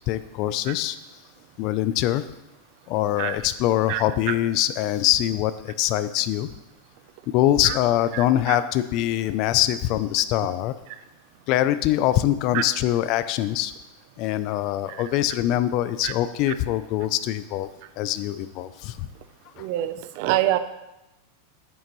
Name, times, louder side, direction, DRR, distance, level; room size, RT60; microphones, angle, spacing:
voice 1, 0.1-1.0 1.6-2.2 2.9-6.5 7.3-10.7 11.5-13.7 14.2-17.7 18.0-19.1 19.6-19.7, left 13 dB, 40° left, 14 dB, 0.4 m, -23 dB
voice 2, 3.9-4.3 7.6-7.8 8.1-8.6 12.5-12.6 16.0-16.1 19.6-20.6, right 14 dB, 50° right, 12 dB, 0.5 m, -26 dB
9.4 x 8.9 x 3.1 m, 0.98 s
supercardioid pair, 155°, 0 cm